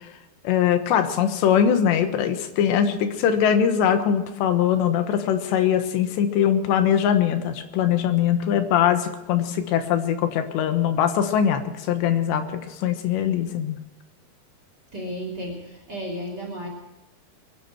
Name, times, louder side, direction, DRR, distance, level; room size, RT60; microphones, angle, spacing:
voice 1, 0.5-13.8, left 9 dB, 80° left, 8 dB, 3.4 m, -22 dB
voice 2, 14.9-16.7, equal, 25° right, 1 dB, 3.1 m, -33 dB
22.0 x 11.0 x 5.9 m, 1.0 s
omnidirectional pair, 5.1 m